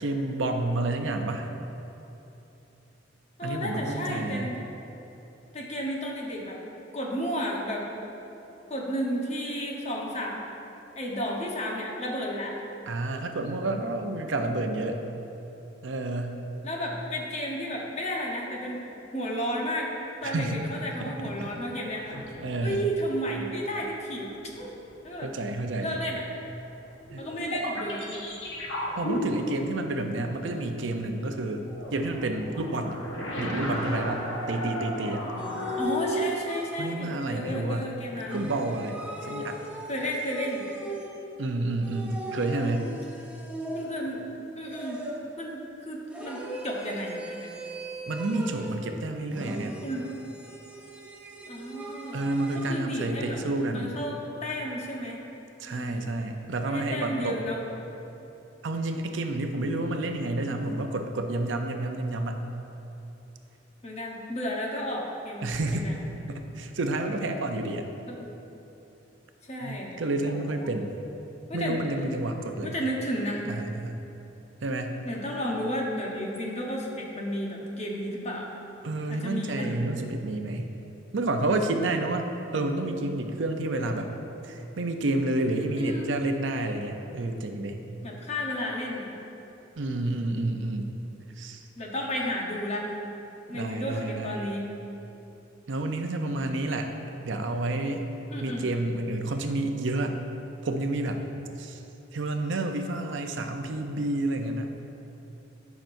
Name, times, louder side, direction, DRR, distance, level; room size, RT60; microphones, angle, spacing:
voice 1, 0.0-1.5 3.4-4.5 12.9-15.0 15.8-16.4 20.2-20.6 21.0-21.1 21.4-21.5 22.1-22.8 25.2-26.0 27.1-27.2 29.0-31.7 31.9-33.0 33.4-35.2 36.8-37.9 38.3-39.6 41.4-42.9 48.1-49.8 52.1-54.0 55.6-57.4 58.6-62.4 65.4-65.9 66.3-67.9 69.6-70.9 71.5-72.7 73.5-74.0 74.6-74.9 78.8-80.8 81.1-82.2 82.5-84.1 84.4-87.8 89.8-90.9 91.4-91.7 93.5-94.4 95.7-96.9 97.2-98.0 98.4-100.2 100.6-101.2 101.6-101.8 102.1-104.8, right 2 dB, 70° right, 5 dB, 0.6 m, -29 dB
voice 2, 3.4-4.7 5.5-6.6 6.9-7.9 8.7-10.4 11.0-12.5 16.6-18.8 19.1-19.9 20.2-22.2 22.6-24.8 25.0-25.3 25.8-26.2 27.2-28.1 30.1-30.5 35.8-38.5 39.9-40.7 43.7-45.0 45.4-47.5 49.8-50.1 51.5-52.3 52.7-53.4 53.7-55.2 55.7-56.2 56.7-57.6 59.8-60.2 63.8-65.9 68.1-68.3 69.4-70.0 70.3-70.7 71.5-71.8 72.6-73.5 75.0-78.6 79.1-79.7 82.5-82.6 85.8-86.1 88.0-89.1 91.8-92.8 93.5-94.6 98.3-98.6, equal, 35° left, -1 dB, 1.0 m, -33 dB
sound 1, 20.8-21.6 22.1-23.2 24.1-25.2 26.3-30.6 31.7-35.8, equal, 85° left, 1.3 m, -35 dB
sound 2, 35.4-37.1 38.3-41.4 41.8-44.2 44.7-45.4 46.1-48.9 49.3-52.8, right 1 dB, 5° right, 0.7 m, -37 dB
13.0 x 5.9 x 2.6 m, 3.0 s
head